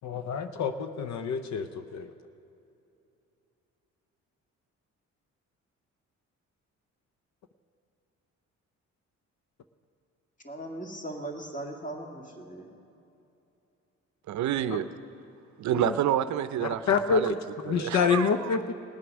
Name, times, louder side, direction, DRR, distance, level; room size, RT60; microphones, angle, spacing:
voice 1, 0.0-2.1 14.7-14.8 15.7-16.0 16.6-18.7, left 6 dB, 65° left, 9 dB, 0.7 m, -28 dB
voice 2, 10.4-12.7, right 1 dB, 25° left, 1 dB, 2.1 m, -38 dB
voice 3, 14.3-14.8 15.6-16.8 17.1-17.3 17.7-18.3, right 11 dB, 70° right, 13 dB, 0.6 m, -28 dB
19.0 x 7.9 x 6.1 m, 2.8 s
cardioid pair, 90°, 30 cm